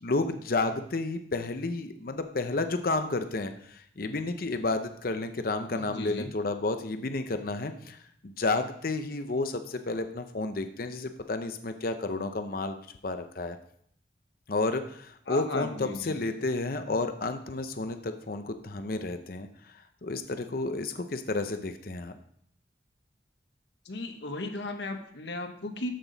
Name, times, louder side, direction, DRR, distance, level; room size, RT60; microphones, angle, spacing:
voice 1, 0.0-12.8 13.0-13.6 14.5-19.5 19.7-22.1, left 3 dB, 50° left, 8 dB, 0.7 m, -31 dB
voice 2, 5.7-6.3 15.3-16.2 23.8-25.9, left 2 dB, 70° left, 6 dB, 1.2 m, -36 dB
13.0 x 6.1 x 4.0 m, 0.67 s
head